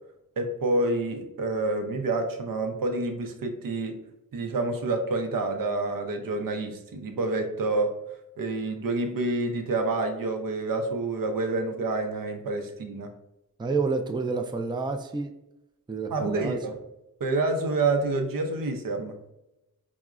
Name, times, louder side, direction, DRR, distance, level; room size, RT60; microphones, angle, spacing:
voice 1, 0.4-4.0 4.3-7.9 8.4-13.1 16.1-16.8 17.2-19.2, right 2 dB, 70° right, 6 dB, 0.5 m, -28 dB
voice 2, 13.6-15.3 15.9-16.6, right 4 dB, 15° right, 4 dB, 0.3 m, -29 dB
4.6 x 2.1 x 2.4 m, 0.89 s
wide cardioid pair, 50°, 35 cm